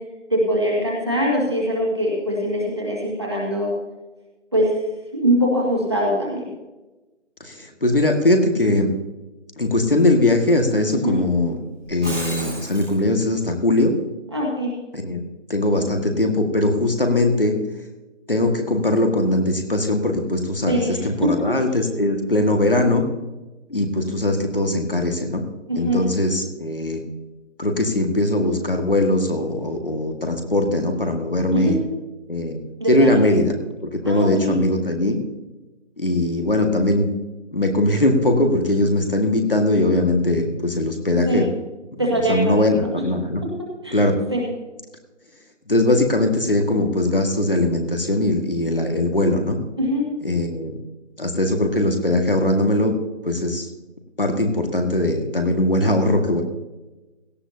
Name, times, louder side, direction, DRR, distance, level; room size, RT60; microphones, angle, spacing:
voice 1, 0.3-3.7 4.5-4.7 5.1-6.5 10.9-11.2 14.3-14.7 20.7-21.3 25.7-26.0 31.5-31.8 32.8-33.1 34.1-34.5 41.1-41.5 42.0-42.7 43.8-44.0 44.3-44.5 49.8-50.1, equal, 20° right, -3 dB, 2.0 m, -22 dB
voice 2, 7.4-8.9 9.6-11.6 11.9-13.9 14.9-15.2 15.5-17.6 18.3-23.0 23.7-25.4 25.8-27.0 27.6-31.8 32.3-32.6 32.9-33.5 33.8-35.2 36.0-37.1 37.5-41.5 42.0-43.4 43.9-44.1 45.7-49.6 50.2-50.8 51.2-52.9 53.2-53.7 54.2-56.4, left 1 dB, 50° left, 4 dB, 1.8 m, -20 dB
Shatter, 11.8-12.9, right 1 dB, 5° right, 1.9 m, -31 dB
17.5 x 13.5 x 2.8 m, 1.1 s
figure-of-eight pair, 175°, 36 cm